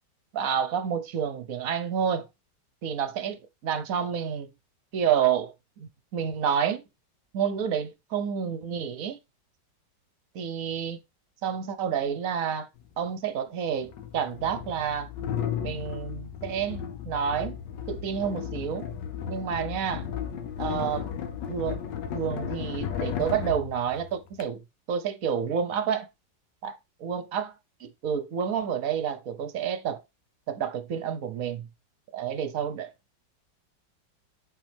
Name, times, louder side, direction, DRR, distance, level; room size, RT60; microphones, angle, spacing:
voice 1, 0.3-2.3 2.8-4.5 4.9-5.5 5.8-6.8 7.3-9.2 10.3-11.0 11.4-12.7 13.0-15.1 15.6-17.6 17.9-18.9 19.3-20.1 20.6-21.1 21.5-21.8 22.1-24.6 24.9-26.1 26.6-27.5 27.8-30.0 30.5-31.7 32.1-32.9, right 8 dB, 60° right, 1.1 m, -29 dB
sound 1, 12.8-12.9 13.8-24.4, left 8 dB, 80° left, 1.5 m, -34 dB
7.9 x 4.4 x 3.4 m
omnidirectional pair, 2.0 m